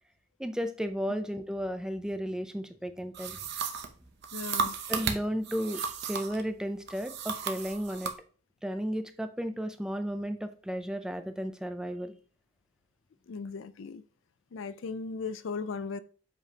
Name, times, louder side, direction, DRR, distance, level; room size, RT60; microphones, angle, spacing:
voice 1, 0.4-3.4 4.9-8.1 8.6-12.1, equal, 5° right, 0.4 m, -34 dB
sound 1, 3.1-6.4 6.9-8.2, right 5 dB, 55° right, 0.7 m, -34 dB
voice 2, 4.3-4.8 13.3-14.0 14.5-16.0, left 4 dB, 65° left, 0.4 m, -37 dB
7.4 x 5.1 x 2.8 m
head